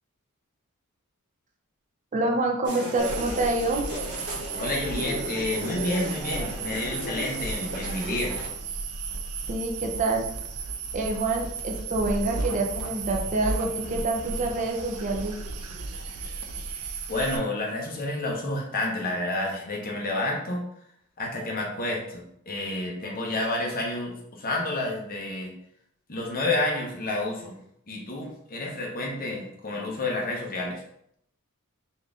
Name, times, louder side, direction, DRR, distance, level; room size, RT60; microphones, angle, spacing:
voice 1, 2.1-3.8 9.5-10.3 10.9-15.3, right 2 dB, 35° right, 1 dB, 0.6 m, -27 dB
sound 1, 2.6-8.5, right 1 dB, 55° right, 1.4 m, -35 dB
sound 2, 3.0-17.4, right 4 dB, 75° right, 0.5 m, -34 dB
voice 2, 4.6-8.4 17.1-20.6 21.2-25.5 26.1-27.6 27.9-30.8, left 2 dB, 40° left, -1 dB, 0.9 m, -30 dB
4.1 x 2.6 x 3.5 m, 0.72 s
head